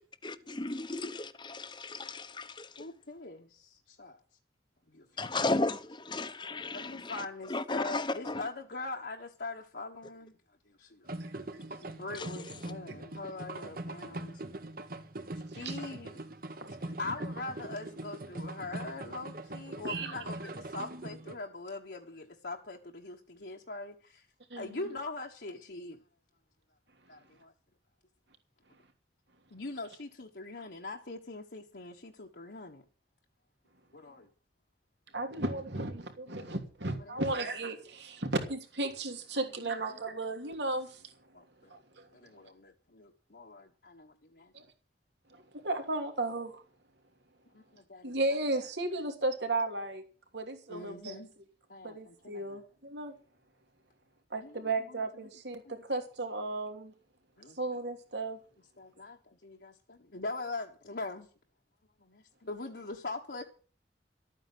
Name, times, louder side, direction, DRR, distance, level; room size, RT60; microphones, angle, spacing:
voice 1, 0.2-2.9 5.2-8.5 12.1-12.3 12.6-12.7, left 2 dB, 25° left, 0.9 m, -35 dB
voice 2, 2.8-4.2 4.9-5.3 6.7-10.4 10.7-11.2 11.7-14.4 15.5-16.2 16.8-24.3 24.5-26.0 27.1-27.5 29.5-32.8 33.9-34.3 37.1-37.2 39.4-39.5 39.9-40.0 41.3-41.7 42.1-44.5 47.5-48.4 50.7-51.3 51.7-52.6 54.4-54.6 55.1-55.3 55.6-55.7 57.4-57.6 58.8-61.3 62.0-63.4, left 3 dB, 65° left, 1.4 m, -42 dB
sound 1, 11.1-21.3, right 2 dB, 55° right, 1.4 m, -42 dB
voice 3, 16.6-17.1 19.8-20.2 24.5-24.9 35.1-41.0 41.7-42.1 44.5-44.6 45.3-46.6 48.0-50.0 50.3-51.2 51.8-53.1 54.3-56.9 57.6-58.4, right 2 dB, 80° right, 2.9 m, -35 dB
13.5 x 9.0 x 7.9 m
head